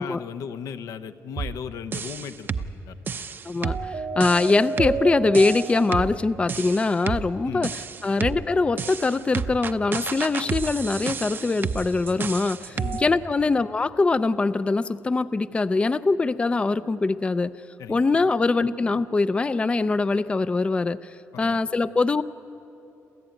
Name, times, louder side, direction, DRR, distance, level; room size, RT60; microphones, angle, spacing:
voice 1, 0.0-3.0 7.4-7.7 12.7-13.0 17.8-18.0 21.3-21.6, left 7 dB, 80° left, 10 dB, 0.8 m, -36 dB
sound 1, 1.4-1.6 1.9-2.7 3.1-6.2 6.5-7.3 7.6-8.4 8.8-13.1, right 5 dB, 40° right, 0.7 m, -30 dB
voice 2, 3.5-17.5 17.9-22.2, left 3 dB, 20° left, 14 dB, 0.4 m, -23 dB
27.5 x 14.0 x 9.0 m, 2.9 s
cardioid pair, 105°, 6 cm